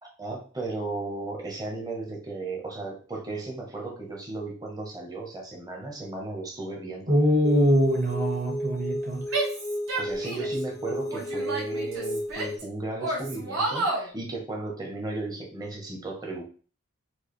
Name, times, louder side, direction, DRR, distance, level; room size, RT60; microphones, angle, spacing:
voice 1, 0.0-7.2 10.0-16.4, right 2 dB, 15° right, -1 dB, 0.8 m, -35 dB
voice 2, 7.1-9.2, equal, 40° right, -1 dB, 1.2 m, -22 dB
sound 1, 7.4-12.6, equal, 15° left, 0.3 m, -33 dB
Female speech woman speaking / Yell, 9.3-10.6 11.1-12.6 13.0-14.1, right 2 dB, 70° right, 1.3 m, -30 dB
4.5 x 2.4 x 3.1 m, 0.39 s
head